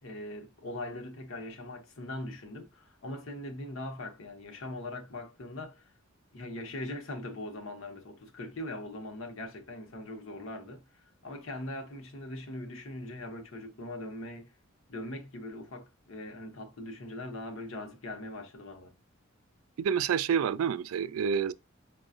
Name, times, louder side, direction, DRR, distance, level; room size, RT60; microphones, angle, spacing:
voice 1, 0.0-5.9 6.3-14.5 14.9-18.9, left 1 dB, 75° left, 0.9 m, -41 dB
voice 2, 19.8-21.5, right 7 dB, 90° right, 0.3 m, -28 dB
4.8 x 2.3 x 2.4 m
head